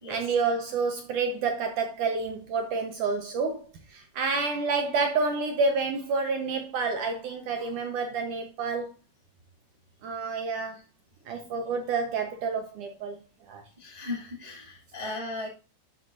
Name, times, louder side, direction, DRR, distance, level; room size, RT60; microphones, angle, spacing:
voice 1, 0.1-8.9 10.0-10.8 11.3-13.2 13.5-13.6, right 4 dB, 80° right, 1.8 m, -29 dB
voice 2, 13.8-15.5, left 2 dB, 25° right, 0.8 m, -36 dB
11.5 x 7.1 x 2.5 m
omnidirectional pair, 5.0 m